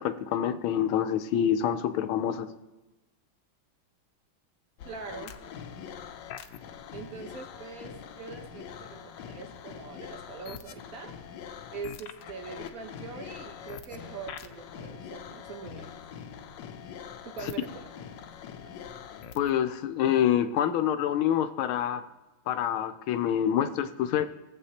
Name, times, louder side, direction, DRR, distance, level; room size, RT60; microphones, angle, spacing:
voice 1, 0.0-2.5 19.3-22.0 22.5-24.3, left 10 dB, 90° left, 11 dB, 1.5 m, -26 dB
sound 1, 4.8-19.6, left 8 dB, 70° left, 1.2 m, -43 dB
voice 2, 4.9-5.3 6.9-11.1 11.7-15.9 17.2-17.9 18.6-18.7, right 5 dB, 50° right, 4 dB, 1.4 m, -43 dB
17.5 x 7.6 x 2.8 m, 1.1 s
omnidirectional pair, 2.2 m